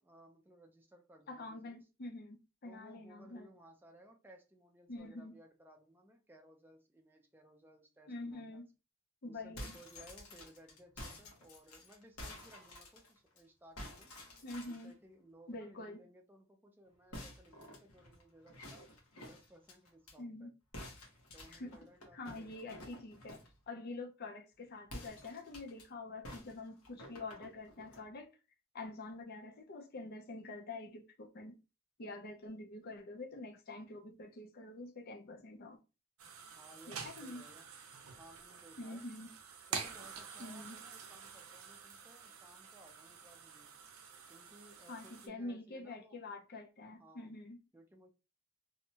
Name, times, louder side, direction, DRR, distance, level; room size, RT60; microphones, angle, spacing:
voice 1, 0.0-1.8 2.7-8.6 9.2-14.1 14.6-18.8 19.2-20.5 21.3-22.8 36.6-37.7 38.2-39.0 39.7-43.8 44.3-46.2 47.0-47.4 47.7-48.1, right 1 dB, 10° right, 0.4 m, -60 dB
voice 2, 1.3-3.5 4.9-5.4 8.1-8.7 9.2-9.8 14.4-14.9 15.5-16.0 20.2-20.5 21.5-21.9 22.1-23.4 23.7-28.3 28.7-31.6 32.0-35.8 36.9-37.4 38.8-39.3 40.4-40.8 44.9-47.6, left 2 dB, 50° left, 0.5 m, -46 dB
sound 1, 9.4-13.4 13.8-14.9 17.1-20.1 20.7-23.6 24.8-25.8 26.2-28.0, left 1 dB, 85° left, 0.9 m, -51 dB
sound 2, 36.2-45.3, right 6 dB, 85° right, 0.5 m, -48 dB
2.7 x 2.1 x 2.7 m
head